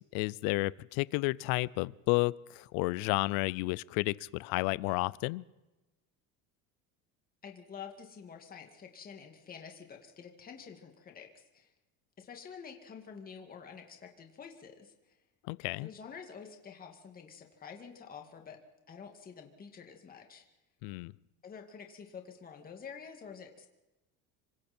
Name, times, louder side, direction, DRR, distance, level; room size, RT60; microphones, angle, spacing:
voice 1, 0.0-5.4 15.5-15.9 20.8-21.1, left 22 dB, 65° left, 21 dB, 0.6 m, -32 dB
voice 2, 7.4-11.7 12.2-14.9 15.8-18.6 18.9-20.4 21.4-23.7, left 6 dB, 25° left, 3 dB, 2.3 m, -48 dB
27.0 x 25.0 x 4.4 m, 1.1 s
cardioid pair, 165°, 38 cm